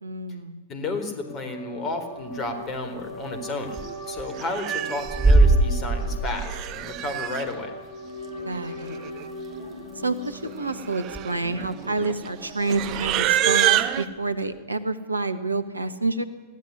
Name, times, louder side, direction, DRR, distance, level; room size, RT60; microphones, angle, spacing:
voice 1, 0.0-0.6 8.4-9.0 10.0-16.2, right 3 dB, 80° right, 11 dB, 1.3 m, -28 dB
voice 2, 0.7-3.8 4.1-7.7, left 2 dB, 30° left, 7 dB, 4.0 m, -32 dB
sound 1, 1.2-14.2, equal, 70° left, 5.9 m, -40 dB
sound 2, 3.0-3.1 3.4-3.5 3.7-3.9 4.2-4.4 5.0-6.9 7.5-7.6 8.4-8.5 9.4-9.5 9.8-9.9 10.3-10.6 11.1-11.3 11.6-11.8 12.7-13.7, right 2 dB, 10° right, 2.7 m, -22 dB
Livestock farm animals working animals, 3.8-4.0 4.4-5.3 6.2-7.5 8.5-8.6 8.8-9.2 9.5-9.8 10.5-14.0, right 13 dB, 40° right, 1.0 m, -27 dB
21.5 x 15.5 x 9.9 m, 1.3 s
figure-of-eight pair, 90°, 0 cm